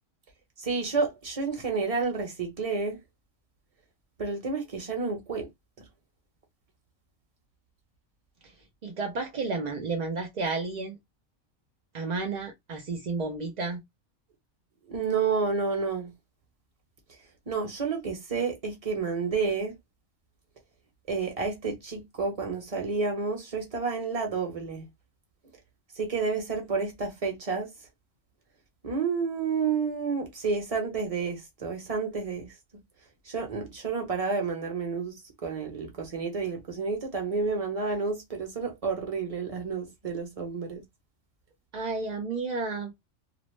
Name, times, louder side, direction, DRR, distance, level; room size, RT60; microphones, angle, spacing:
voice 1, 0.6-3.0 4.2-5.5 14.9-16.1 17.5-19.7 21.1-24.8 26.0-27.7 28.8-32.5 33.3-35.1 35.4-40.8, right 4 dB, 30° right, 0.8 m, -30 dB
voice 2, 8.8-11.0 11.9-13.8 41.7-43.1, right 3 dB, 55° right, 0.4 m, -32 dB
2.5 x 2.0 x 3.1 m
omnidirectional pair, 1.4 m